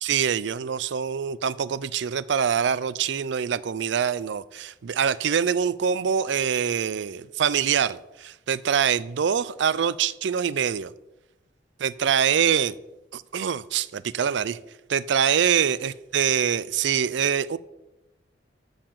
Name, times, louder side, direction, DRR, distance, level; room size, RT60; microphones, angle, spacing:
voice 1, 0.0-10.9 11.8-12.7 13.1-14.6 14.9-17.6, right 7 dB, 65° right, 0.4 m, -24 dB
13.0 x 4.5 x 7.5 m
head